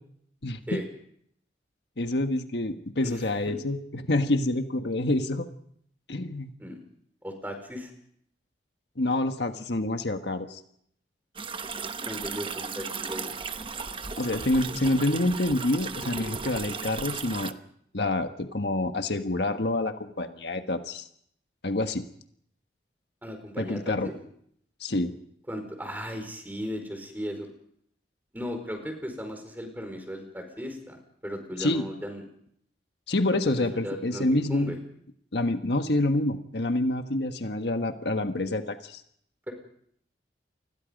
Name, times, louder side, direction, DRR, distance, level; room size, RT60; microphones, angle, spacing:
voice 1, 0.4-0.8 2.0-5.5 6.1-6.5 9.0-10.6 14.2-17.5 17.9-21.1 21.6-22.0 23.6-24.1 24.8-25.1 31.6-31.8 33.1-34.8 35.3-39.0, left 2 dB, 75° left, 7 dB, 1.5 m, -27 dB
voice 2, 3.0-3.6 6.6-6.8 7.2-7.9 12.0-13.4 23.2-24.1 25.5-27.5 28.3-32.2 33.3-34.8 39.5-39.6, equal, 10° right, 5 dB, 4.9 m, -36 dB
sound 1, 11.4-17.5, right 5 dB, 30° right, 0.9 m, -35 dB
28.5 x 21.0 x 5.3 m, 0.69 s
head